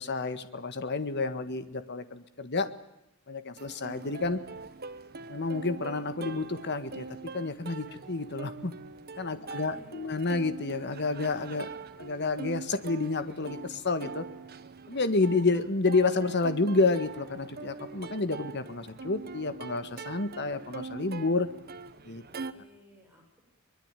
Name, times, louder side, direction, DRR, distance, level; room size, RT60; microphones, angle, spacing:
voice 1, 0.0-2.7 3.3-4.4 5.3-7.1 7.3-8.7 9.2-11.7 12.0-14.3 14.9-21.5 22.0-22.2, left 3 dB, 55° left, 11 dB, 1.7 m, -29 dB
Plucked string instrument, 3.6-22.5, right 4 dB, 45° right, 1.3 m, -43 dB
voice 2, 9.2-10.0 22.2-23.4, equal, 10° right, 0 dB, 7.9 m, -57 dB
24.0 x 21.0 x 9.1 m, 0.86 s
head